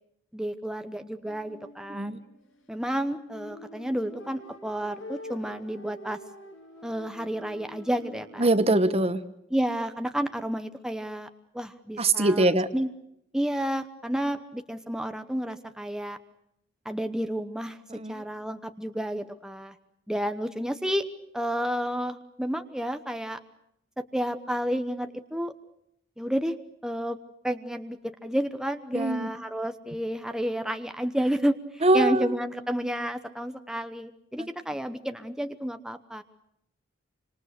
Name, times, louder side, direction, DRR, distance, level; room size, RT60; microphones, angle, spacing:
voice 1, 0.3-2.2 2.7-6.2 6.8-8.5 9.5-11.3 11.5-12.5 12.7-12.9 13.3-16.2 16.8-17.8 18.1-19.7 20.1-21.0 21.3-23.4 24.0-25.5 26.2-26.5 26.8-27.2 27.4-36.2, equal, 5° right, 8 dB, 0.9 m, -31 dB
sound 1, 1.2-8.5, left 1 dB, 80° left, 6.1 m, -46 dB
voice 2, 1.9-2.2 8.4-9.2 12.0-12.7 17.9-18.2 28.9-29.3 31.8-32.4 34.4-34.5, right 2 dB, 30° right, 12 dB, 1.1 m, -23 dB
26.5 x 26.0 x 6.6 m, 0.79 s
head